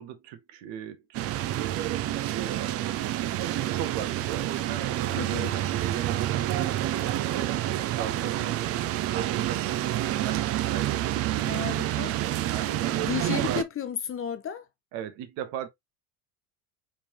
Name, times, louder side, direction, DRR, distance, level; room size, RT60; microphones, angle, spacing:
voice 1, 0.0-5.5 5.8-6.7 7.1-11.2 12.5-13.4 14.9-15.7, right 10 dB, 55° right, 1.1 m, -38 dB
sound 1, 1.1-13.6, right 13 dB, 30° right, 0.4 m, -28 dB
voice 2, 5.1-5.6 11.5-12.1 13.0-14.6, left 8 dB, 25° left, 0.7 m, -33 dB
4.4 x 3.5 x 2.8 m
hypercardioid pair, 70°, 49 cm